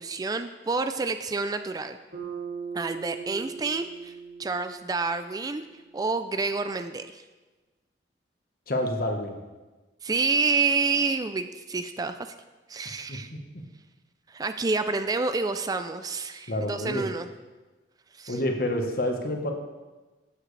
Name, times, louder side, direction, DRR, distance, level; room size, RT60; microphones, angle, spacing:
voice 1, 0.0-2.0 2.7-5.6 5.9-7.2 10.0-12.3 12.7-13.3 14.3-17.3 18.1-18.4, right 4 dB, 20° right, 9 dB, 0.3 m, -28 dB
Bass guitar, 2.1-6.5, right 5 dB, 80° right, 2.6 m, -40 dB
voice 2, 8.7-9.4 13.1-13.2 16.5-17.1 18.3-19.5, left 1 dB, 55° left, 3 dB, 1.2 m, -28 dB
13.0 x 7.5 x 3.3 m, 1.2 s
head